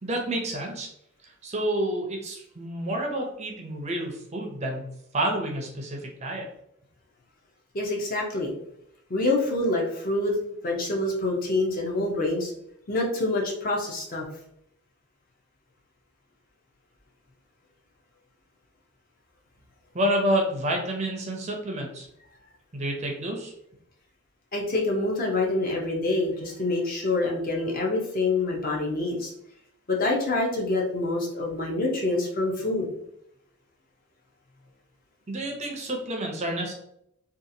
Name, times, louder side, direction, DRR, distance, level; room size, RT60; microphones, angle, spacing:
voice 1, 0.0-0.9 1.4-4.9 5.1-6.4 19.9-22.1 22.7-23.5 35.3-36.7, right 1 dB, 30° right, 1 dB, 0.5 m, -29 dB
voice 2, 7.7-8.5 9.1-10.3 10.6-12.5 12.9-14.3 24.5-29.3 29.9-32.9, left 2 dB, 40° left, -1 dB, 0.5 m, -26 dB
2.7 x 2.3 x 2.6 m, 0.75 s
head